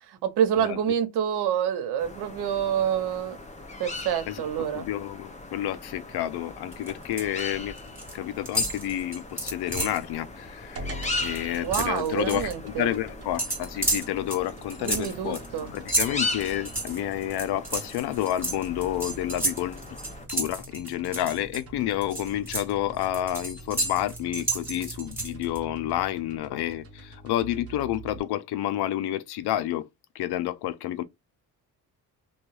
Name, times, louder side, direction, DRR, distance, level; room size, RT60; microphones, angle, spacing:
voice 1, 0.1-3.4 3.8-4.9 11.6-13.0 14.8-15.7, right 9 dB, 80° right, 0.8 m, -27 dB
sound 1, 2.0-20.3, left 2 dB, 20° left, 0.7 m, -39 dB
voice 2, 4.7-7.7 8.1-19.9 20.3-29.9 30.1-31.0, left 13 dB, 80° left, 0.5 m, -30 dB
sound 2, 6.7-7.4 7.7-8.2 8.5-10.0 10.5-10.6 10.9-12.5 13.4-21.6 22.0-25.6, right 1 dB, 5° right, 1.5 m, -31 dB
sound 3, 10.8-28.2, right 2 dB, 35° right, 0.9 m, -45 dB
2.7 x 2.3 x 3.0 m
cardioid pair, 105°, 39 cm